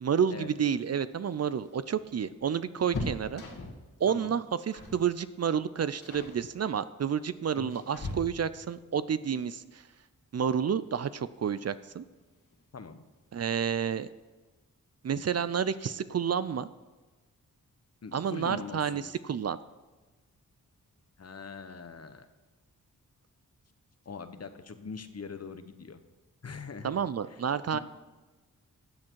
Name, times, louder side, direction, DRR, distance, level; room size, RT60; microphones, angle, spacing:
voice 1, 0.0-3.4 4.0-9.8 10.3-12.0 13.3-14.1 15.0-16.7 18.1-19.6 26.8-27.8, right 7 dB, 50° right, 15 dB, 0.5 m, -30 dB
sound 1, 1.2-3.9 4.7-5.1 5.3-5.6 6.0-6.4 7.2-8.7 10.4-10.5 10.9-11.0 12.2-12.6 12.9-13.0 13.3-13.5, left 2 dB, 65° left, 2.2 m, -40 dB
voice 2, 18.0-19.1 21.2-22.3 24.0-26.0 26.4-26.9 27.3-27.4 27.7-27.8, left 5 dB, 50° left, 10 dB, 1.0 m, -42 dB
13.0 x 7.5 x 4.7 m, 1.2 s
cardioid pair, 55°, 33 cm